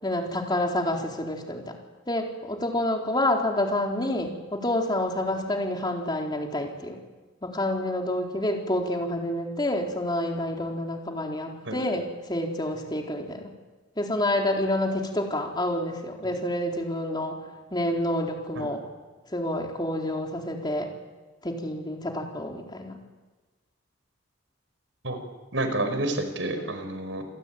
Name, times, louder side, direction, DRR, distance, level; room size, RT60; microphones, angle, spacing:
voice 1, 0.0-1.8 2.1-7.0 7.4-13.5 14.0-17.4 17.7-18.8 19.3-20.9 21.4-23.0, left 1 dB, 25° left, 1 dB, 4.0 m, -28 dB
voice 2, 25.5-27.3, right 2 dB, 85° right, 7 dB, 5.2 m, -29 dB
28.5 x 19.5 x 9.1 m, 1.2 s
head